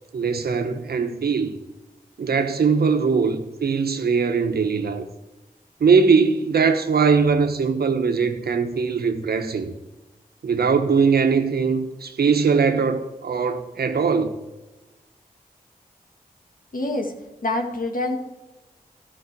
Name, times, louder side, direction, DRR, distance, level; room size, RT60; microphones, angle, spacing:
voice 1, 0.1-1.6 2.2-5.1 5.8-9.7 10.4-14.3, right 5 dB, 90° right, 1.1 m, -21 dB
voice 2, 16.7-17.1 17.4-18.2, left 2 dB, 60° left, 2.1 m, -25 dB
12.5 x 5.8 x 8.3 m
cardioid pair, 45°, 16 cm